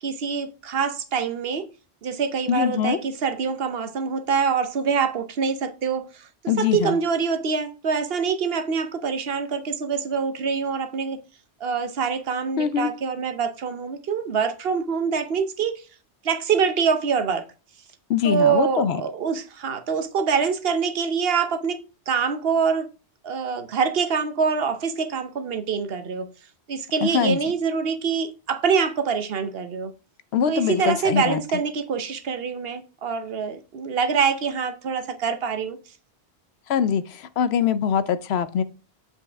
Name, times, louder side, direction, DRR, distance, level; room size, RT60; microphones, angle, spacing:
voice 1, 0.0-1.6 2.0-6.3 6.6-11.2 11.6-15.8 16.2-17.4 18.2-21.8 22.1-22.9 23.2-26.3 26.7-29.9 30.5-35.8, right 6 dB, 65° right, 1.0 m, -25 dB
voice 2, 2.5-3.0 6.5-7.0 12.6-12.9 18.1-19.0 27.0-27.4 30.3-31.4 36.7-38.6, left 8 dB, 75° left, 0.8 m, -23 dB
7.3 x 5.4 x 3.4 m
omnidirectional pair, 1.1 m